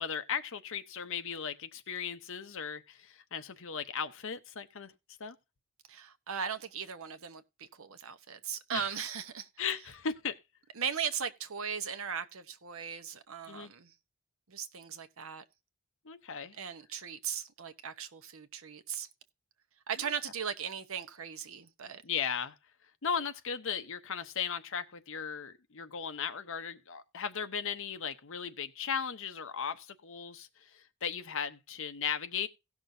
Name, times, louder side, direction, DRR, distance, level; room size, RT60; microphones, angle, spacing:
voice 1, 0.0-4.9 5.2-5.4 8.7-8.9 9.6-10.4 13.5-13.7 16.0-16.6 22.0-22.6 23.0-32.5, left 7 dB, 65° left, 0.9 m, -37 dB
voice 2, 5.9-9.5 10.8-13.9 14.5-15.4 16.6-19.1 19.9-22.0, right 7 dB, 65° right, 1.0 m, -38 dB
17.5 x 6.1 x 2.7 m
head